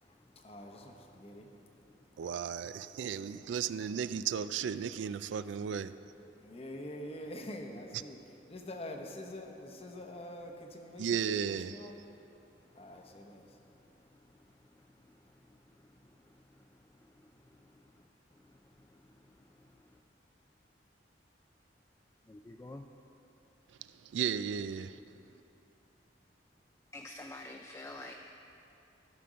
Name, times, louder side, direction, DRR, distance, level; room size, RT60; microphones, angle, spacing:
voice 1, 0.0-1.5 2.2-2.6 2.9-3.0 3.9-4.4 6.4-8.2 8.5-12.0 12.7-13.6, left 1 dB, 35° left, 0.8 m, -46 dB
voice 2, 2.2-5.9 11.0-11.8 24.0-25.0, right 7 dB, 85° right, 0.3 m, -34 dB
voice 3, 22.3-22.8 26.9-28.2, left 2 dB, 15° left, 0.3 m, -46 dB
13.5 x 6.0 x 5.1 m
head